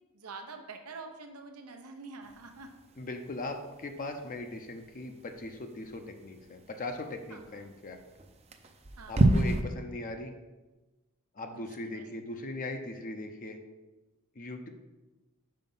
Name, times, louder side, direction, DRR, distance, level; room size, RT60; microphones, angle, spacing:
voice 1, 0.1-2.7 7.3-7.4 9.0-9.2 11.5-11.6 11.9-12.0, right 4 dB, 90° right, 4 dB, 0.9 m, -45 dB
sound 1, 2.2-9.6, right 2 dB, 30° right, 0.5 m, -33 dB
voice 2, 3.0-8.0 9.1-10.3 11.4-13.6 14.4-14.7, left 2 dB, 40° left, 5 dB, 0.6 m, -39 dB
5.5 x 5.0 x 5.5 m, 1.1 s
head